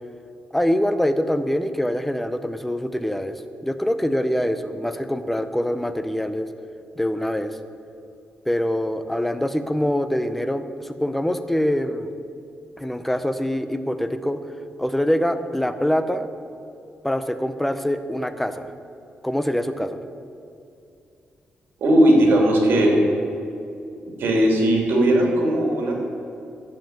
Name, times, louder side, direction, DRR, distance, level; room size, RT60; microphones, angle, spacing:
voice 1, 0.5-6.5 7.0-7.6 8.5-12.1 12.8-14.4 14.8-16.3 17.0-18.7 19.2-20.0, equal, 5° left, 10 dB, 0.5 m, -24 dB
voice 2, 21.8-23.0 24.2-25.9, right 1 dB, 75° right, -1 dB, 2.8 m, -17 dB
10.5 x 7.2 x 7.4 m, 2.5 s
wide cardioid pair, 140°, 4 cm